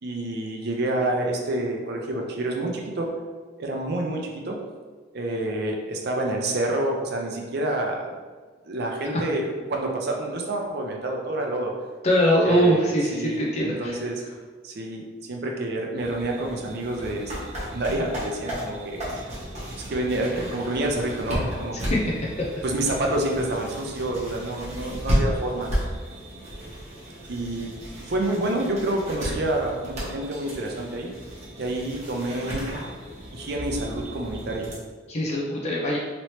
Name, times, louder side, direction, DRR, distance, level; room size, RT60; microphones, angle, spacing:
voice 1, 0.0-3.1 3.6-4.6 5.1-8.1 8.7-11.7 12.4-12.8 13.1-14.2 14.6-17.3 17.7-19.0 19.9-22.1 22.6-25.7 27.3-31.1 31.6-32.7 33.3-34.7, right 1 dB, 60° right, 1 dB, 0.6 m, -28 dB
voice 2, 12.0-14.0 21.9-22.0 22.4-22.5 35.1-36.0, equal, 35° left, -3 dB, 0.5 m, -22 dB
sound 1, 16.0-34.7, equal, 40° right, 1.1 m, -33 dB
3.0 x 2.8 x 3.1 m, 1.4 s
head